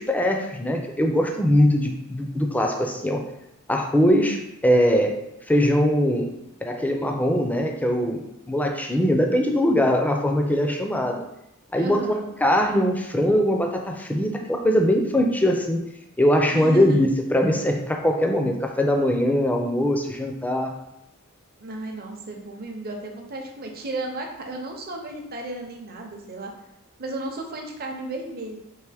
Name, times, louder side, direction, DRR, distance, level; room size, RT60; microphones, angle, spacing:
voice 1, 0.0-3.2 3.7-5.2 5.5-6.3 6.6-11.2 11.7-15.8 16.2-20.8, equal, 5° left, 3 dB, 0.4 m, -21 dB
voice 2, 11.8-12.3 16.5-17.2 21.6-26.5 27.0-28.6, right 2 dB, 45° right, 2 dB, 0.7 m, -34 dB
4.6 x 2.9 x 3.4 m, 0.85 s
head